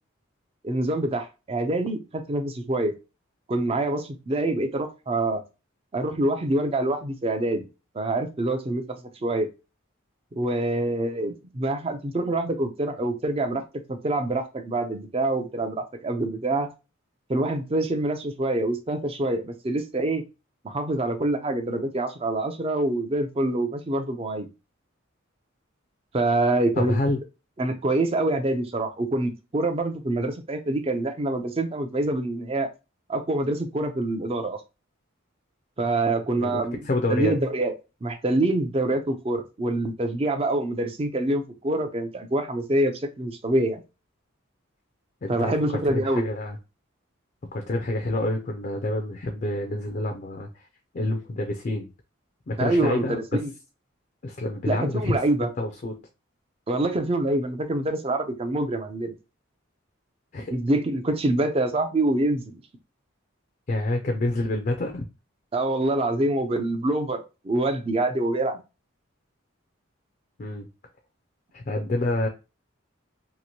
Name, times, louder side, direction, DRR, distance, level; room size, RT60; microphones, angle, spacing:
voice 1, 0.6-2.9 3.5-5.4 5.9-7.7 7.9-8.8 9.2-9.5 10.3-13.6 13.9-16.7 17.3-20.2 20.6-24.5 26.1-27.0 27.6-32.7 33.1-34.6 35.8-37.7 38.0-43.8 45.3-46.2 52.6-53.5 54.7-55.5 56.7-59.1 60.5-62.5 65.5-68.6, right 2 dB, 30° right, 7 dB, 0.4 m, -25 dB
voice 2, 26.8-27.2 36.4-37.3 45.2-46.6 47.5-50.6 50.9-51.9 52.5-53.2 54.2-55.2 55.6-55.9 60.3-60.5 63.7-65.0 70.4-70.7 71.5-72.3, left 2 dB, 40° left, 3 dB, 0.4 m, -28 dB
2.9 x 2.5 x 2.7 m, 0.28 s
head